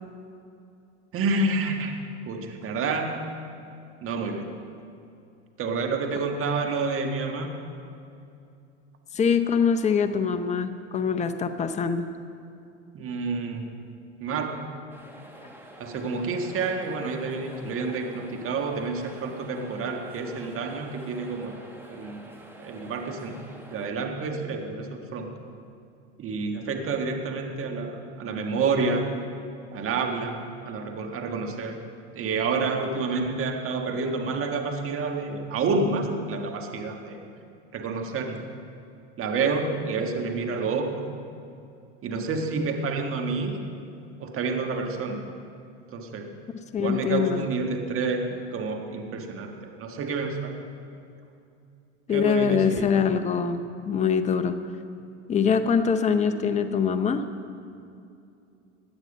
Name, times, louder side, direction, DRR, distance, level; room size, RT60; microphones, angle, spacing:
voice 1, 1.1-2.0 2.3-3.2 4.0-4.5 5.6-7.5 12.9-13.7 14.2-14.6 15.8-21.5 21.9-22.2 22.6-23.4 23.7-25.3 26.2-29.1 29.7-30.4 30.7-31.8 32.1-37.2 37.7-38.4 39.2-41.1 42.0-43.5 44.2-45.2 45.9-46.3 46.8-50.6 52.1-53.0, right 4 dB, 40° right, 3 dB, 1.7 m, -29 dB
voice 2, 9.1-12.1 46.7-47.4 52.1-54.6 55.3-57.3, left 6 dB, 20° left, 8 dB, 0.7 m, -24 dB
sound 1, 14.9-23.9, right 1 dB, 5° right, 1.9 m, -47 dB
16.0 x 10.5 x 5.4 m, 2.6 s
hypercardioid pair, 100°, 35 cm